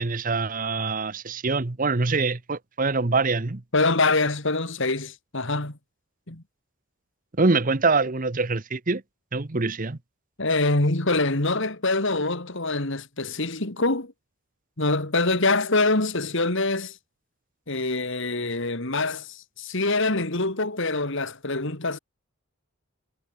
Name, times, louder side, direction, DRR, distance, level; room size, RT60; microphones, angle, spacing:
voice 1, 0.0-3.6 7.4-9.0 9.3-10.0, right 3 dB, 35° right, 0.9 m, -24 dB
voice 2, 3.7-5.8 6.3-6.4 10.4-14.1 14.8-17.0 17.7-22.0, left 2 dB, 55° left, 2.4 m, -25 dB
head